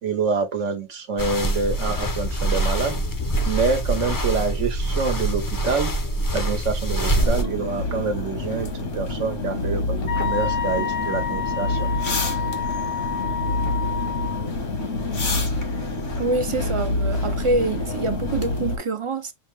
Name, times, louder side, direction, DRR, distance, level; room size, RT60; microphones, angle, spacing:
voice 1, 0.0-3.0 3.5-5.9 6.3-11.9, right 5 dB, 85° right, 1.3 m, -26 dB
sound 1, 1.2-7.4, right 1 dB, 30° left, 0.4 m, -24 dB
sound 2, 7.2-18.8, left 2 dB, 80° left, 1.7 m, -27 dB
Wind instrument woodwind instrument, 10.1-14.5, left 7 dB, 55° left, 0.8 m, -29 dB
voice 2, 16.2-19.3, right 3 dB, 45° right, 0.4 m, -25 dB
6.3 x 2.2 x 3.1 m
omnidirectional pair, 1.2 m